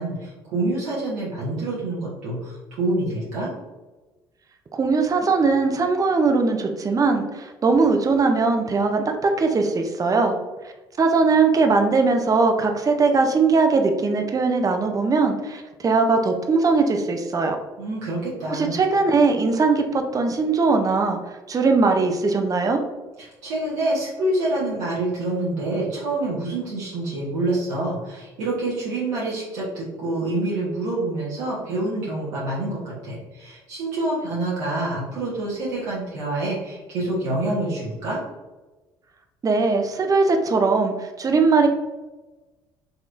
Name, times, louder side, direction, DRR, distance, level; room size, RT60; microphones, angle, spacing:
voice 1, 0.0-3.5 17.8-18.8 23.2-38.2, right 2 dB, 75° right, -7 dB, 1.1 m, -27 dB
voice 2, 4.7-10.4 11.0-17.6 18.5-21.2 21.5-22.8 39.4-41.7, right 4 dB, 30° right, 4 dB, 0.5 m, -20 dB
4.0 x 2.9 x 2.5 m, 1.2 s
hypercardioid pair, 60°, 12 cm